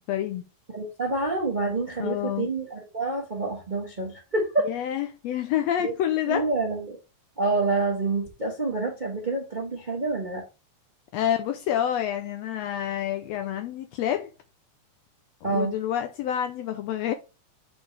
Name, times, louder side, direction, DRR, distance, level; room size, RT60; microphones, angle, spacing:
voice 1, 0.1-0.4 2.0-2.5 4.6-6.5 11.1-14.3 15.4-17.1, left 10 dB, 80° left, 1.5 m, -28 dB
voice 2, 0.7-4.7 5.8-5.9 6.3-7.0 7.4-10.4 15.4-15.7, right 3 dB, 90° right, 0.4 m, -27 dB
7.1 x 5.4 x 3.3 m
omnidirectional pair, 3.5 m